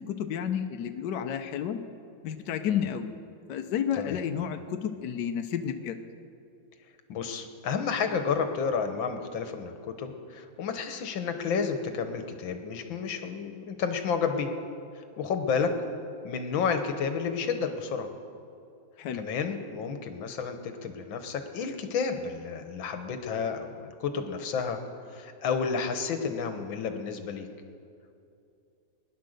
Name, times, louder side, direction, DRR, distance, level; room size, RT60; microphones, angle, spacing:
voice 1, 0.0-1.8 2.2-3.1 3.5-6.0 19.0-19.2, left 8 dB, 70° left, 6 dB, 1.3 m, -31 dB
voice 2, 7.1-14.5 15.0-15.7 16.2-18.1 19.1-24.8 25.1-27.5, left 6 dB, 85° left, 7 dB, 1.9 m, -31 dB
21.0 x 10.5 x 6.6 m, 2.5 s
omnidirectional pair, 2.1 m